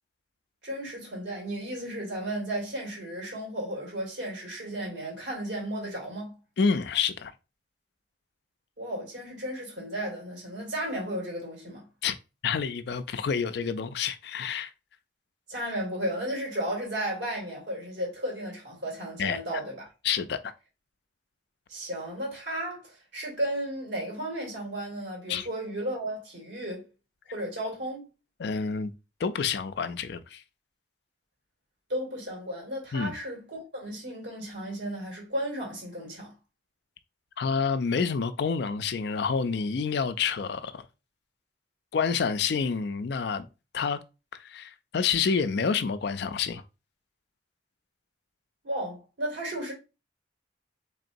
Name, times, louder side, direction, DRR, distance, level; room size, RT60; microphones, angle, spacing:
voice 1, 0.6-6.3 8.8-11.9 15.5-19.9 21.7-26.9 27.3-28.1 31.9-36.3 48.6-49.7, right 1 dB, 75° right, 2.4 m, -34 dB
voice 2, 6.6-7.3 12.0-12.2 12.4-14.7 19.2-19.4 20.0-20.5 25.3-25.5 28.4-28.9 29.2-30.4 32.9-33.2 37.4-40.8 41.9-43.5 43.7-44.0 44.4-46.6, left 6 dB, 60° left, 0.4 m, -28 dB
3.9 x 3.5 x 2.6 m
head